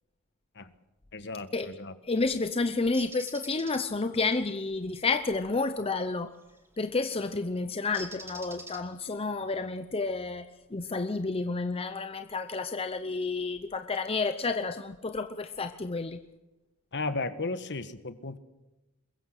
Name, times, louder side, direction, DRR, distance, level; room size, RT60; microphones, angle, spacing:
voice 1, 1.1-1.9 16.9-18.4, left 3 dB, 55° left, 11 dB, 1.4 m, -35 dB
voice 2, 2.1-6.3 6.8-16.2, left 3 dB, 25° left, 8 dB, 0.7 m, -30 dB
Bird, 2.9-3.8 6.4-6.7 7.9-9.1, right 2 dB, 10° right, 2.5 m, -44 dB
22.5 x 21.5 x 6.6 m, 1.0 s
head